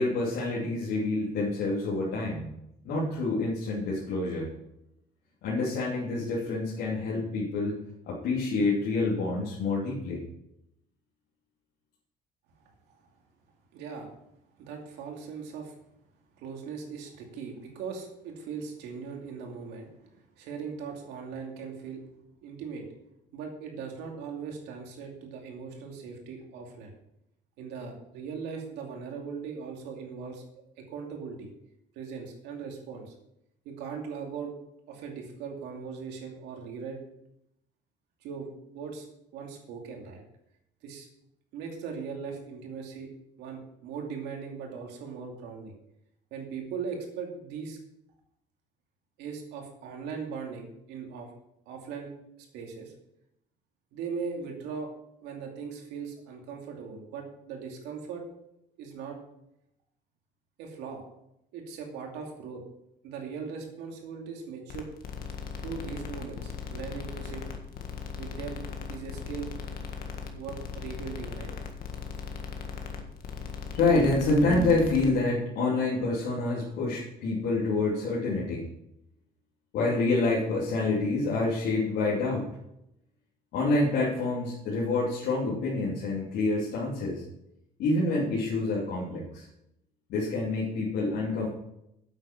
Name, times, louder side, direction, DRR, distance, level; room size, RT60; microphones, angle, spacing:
voice 1, 0.0-2.5 2.8-4.5 5.4-7.8 8.1-10.2 73.7-78.7 79.7-82.5 83.5-87.2 87.8-89.4 90.1-91.5, left 3 dB, 80° left, -6 dB, 2.9 m, -27 dB
voice 2, 13.7-14.1 14.6-15.7 16.4-22.0 22.4-22.8 23.3-26.9 27.6-30.4 30.8-31.5 31.9-33.1 33.6-34.5 34.9-37.0 38.2-38.5 38.7-39.1 39.3-40.2 40.8-41.1 41.5-43.1 43.4-45.7 46.3-47.8 49.2-51.3 51.7-52.1 52.4-52.9 53.9-54.9 55.2-58.2 58.8-59.2 60.6-61.0 61.5-62.6 63.0-64.9 65.6-67.5 68.2-68.6 68.9-69.5 70.3-71.5, right 6 dB, 90° right, 2 dB, 2.6 m, -39 dB
sound 1, 64.7-75.1, left 5 dB, 60° left, 1.7 m, -38 dB
9.4 x 8.1 x 5.9 m, 0.81 s
cardioid pair, 110°, 17 cm